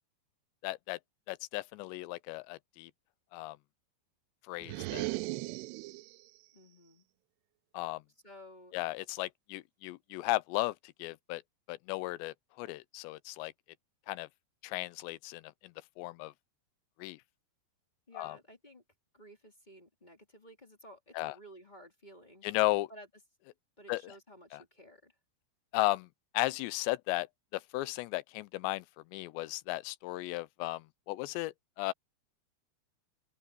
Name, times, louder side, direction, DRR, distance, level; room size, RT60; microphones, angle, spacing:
voice 1, 0.6-1.0 1.3-2.9 3.3-3.6 4.5-5.1 7.7-8.0 8.7-11.4 11.7-13.5 14.1-14.3 14.6-16.3 17.0-17.2 18.1-18.4 21.1-21.4 22.4-22.9 23.9-24.1 24.5-24.6 25.7-26.1 26.3-27.3 27.5-28.9 29.1-31.9, left 19 dB, 85° left, 2.8 m, -35 dB
sound 1, 4.6-6.2, right 21 dB, 80° right, 2.4 m, -37 dB
voice 2, 6.5-7.0 8.2-8.7 18.1-18.8 19.1-22.4 22.9-23.1 23.8-25.1, equal, 15° left, 2.3 m, -54 dB
open air
omnidirectional pair, 5.2 m